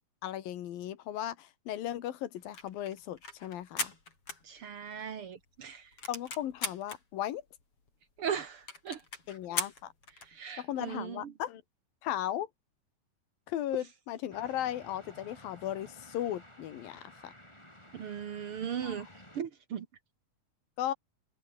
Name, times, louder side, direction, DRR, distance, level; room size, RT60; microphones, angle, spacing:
voice 1, 0.2-3.9 6.1-7.4 9.3-9.9 10.6-11.6 12.0-12.5 13.5-17.3 18.8-19.0 20.8-20.9, left 12 dB, 65° left, 3.3 m, -36 dB
sound 1, 2.4-5.1 5.4-5.5 5.7-7.0 7.6-7.7 7.9-8.0 8.3-8.4 8.7-10.4, left 4 dB, 35° left, 6.1 m, -39 dB
voice 2, 4.4-5.9 8.2-9.0 10.3-11.3 17.9-19.1 19.3-19.8, right 8 dB, 60° right, 1.4 m, -38 dB
sound 2, 14.3-19.4, left 1 dB, 5° left, 6.8 m, -54 dB
omnidirectional pair, 4.6 m